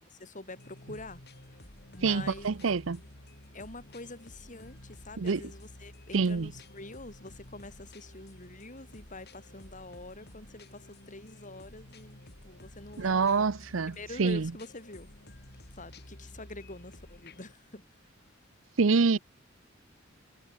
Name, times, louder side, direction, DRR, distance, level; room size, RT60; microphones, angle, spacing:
voice 1, 0.1-1.2 1.9-2.5 3.5-13.5 13.9-15.1 15.7-17.8 19.0-19.2, left 2 dB, 40° left, 7.1 m, -46 dB
sound 1, 0.6-17.5, left 1 dB, 55° left, 4.8 m, -52 dB
voice 2, 2.0-3.0 5.2-5.4 6.1-6.5 13.0-14.5 18.8-19.2, right 4 dB, 80° right, 0.7 m, -26 dB
head